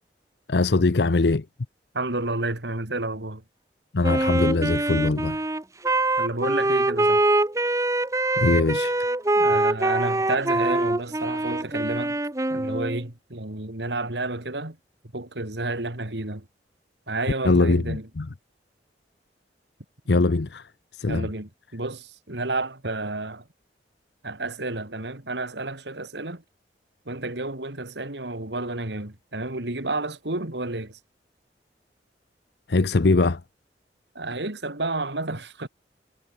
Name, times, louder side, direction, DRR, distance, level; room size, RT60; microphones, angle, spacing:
voice 1, 0.5-1.5 3.9-5.4 8.4-9.0 17.4-18.3 20.1-21.3 32.7-33.4, left 3 dB, 70° left, 0.7 m, -22 dB
voice 2, 1.9-3.4 6.2-7.2 9.4-12.2 12.5-14.8 15.1-16.4 17.1-18.1 20.1-20.2 21.1-23.4 24.2-26.4 27.1-31.0 34.1-35.7, right 2 dB, 75° right, 2.9 m, -30 dB
Wind instrument woodwind instrument, 4.0-13.0, right 2 dB, 15° right, 0.9 m, -24 dB
head